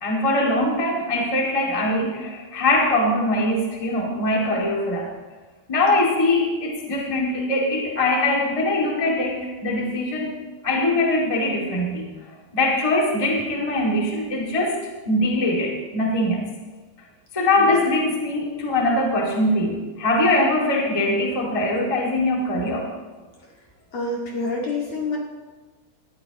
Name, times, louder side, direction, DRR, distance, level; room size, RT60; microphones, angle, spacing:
voice 1, 0.0-5.1 5.7-10.4 10.6-12.1 12.5-14.8 15.0-16.5 17.3-22.9, left 1 dB, 15° left, -2 dB, 1.2 m, -22 dB
voice 2, 23.9-25.2, left 3 dB, 45° left, -3 dB, 2.8 m, -27 dB
20.0 x 14.0 x 3.0 m, 1.3 s
omnidirectional pair, 4.5 m